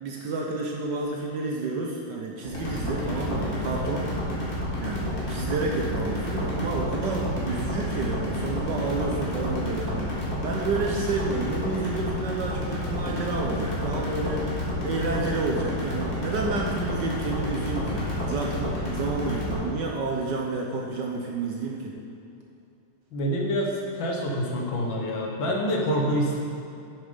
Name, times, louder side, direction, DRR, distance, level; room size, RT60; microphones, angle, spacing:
voice 1, 0.0-4.0 4.8-21.9, right 3 dB, 65° right, -1 dB, 1.2 m, -30 dB
sound 1, 2.4-19.6, left 1 dB, 25° left, 2.1 m, -30 dB
voice 2, 23.1-26.4, equal, 65° left, -1 dB, 1.8 m, -26 dB
8.2 x 6.8 x 5.1 m, 2.6 s
omnidirectional pair, 2.4 m